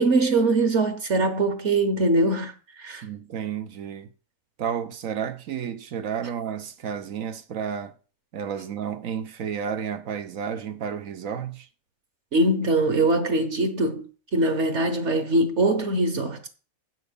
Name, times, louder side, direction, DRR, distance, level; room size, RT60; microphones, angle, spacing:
voice 1, 0.0-2.5 2.8-3.0 12.3-16.5, right 2 dB, 60° right, 1.4 m, -22 dB
voice 2, 3.0-4.1 4.6-7.9 8.3-11.7, right 8 dB, 85° right, 1.4 m, -31 dB
7.9 x 6.3 x 6.7 m
omnidirectional pair, 1.4 m